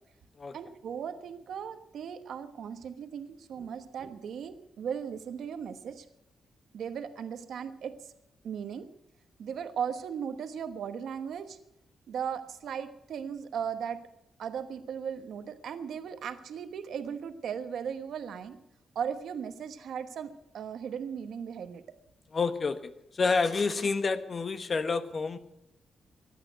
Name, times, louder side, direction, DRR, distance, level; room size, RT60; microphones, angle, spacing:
voice 1, 0.5-6.0 6.7-8.1 8.4-8.9 9.4-11.6 12.1-14.0 14.4-18.6 18.9-22.0, right 7 dB, 75° right, 9 dB, 1.1 m, -37 dB
voice 2, 22.3-22.8 23.1-25.4, left 4 dB, 40° left, 10 dB, 1.1 m, -28 dB
15.5 x 11.5 x 7.9 m, 0.81 s
wide cardioid pair, 130°, 0 cm